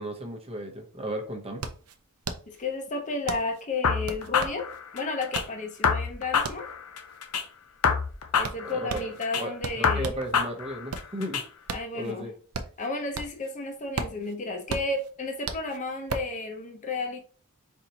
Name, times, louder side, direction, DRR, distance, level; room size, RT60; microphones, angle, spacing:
voice 1, 0.0-1.6 8.6-11.4 11.9-12.3, right 1 dB, 25° right, 4 dB, 0.9 m, -35 dB
sound 1, 1.6-10.3 10.7-13.5 13.8-16.4, right 4 dB, 70° right, 0.6 m, -37 dB
voice 2, 2.5-4.7 4.9-6.7 8.3-10.1 11.7-12.3 12.8-17.2, left 3 dB, 35° left, 4 dB, 0.9 m, -32 dB
sound 2, 3.8-5.4 5.8-7.4 7.8-9.4 9.8-11.4, left 6 dB, 80° left, 0.7 m, -27 dB
4.4 x 4.0 x 2.9 m, 0.41 s
head